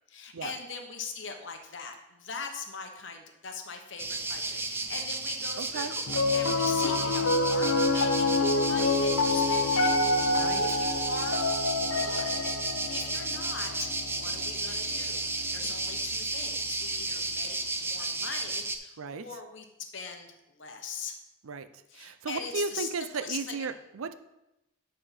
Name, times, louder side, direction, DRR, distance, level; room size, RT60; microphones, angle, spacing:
voice 1, 0.1-10.0 10.5-11.4 11.9-21.1 21.9-23.7, left 5 dB, 60° left, 5 dB, 1.0 m, -41 dB
sound 1, 4.0-18.8, right 3 dB, 10° right, 0.5 m, -33 dB
voice 2, 5.6-5.9 10.4-10.6 19.0-19.2 21.4-21.7 21.9-24.1, right 4 dB, 90° right, 11 dB, 0.6 m, -35 dB
Piano, 6.1-16.4, left 2 dB, 85° left, 0.7 m, -28 dB
9.3 x 4.2 x 5.8 m, 0.92 s
head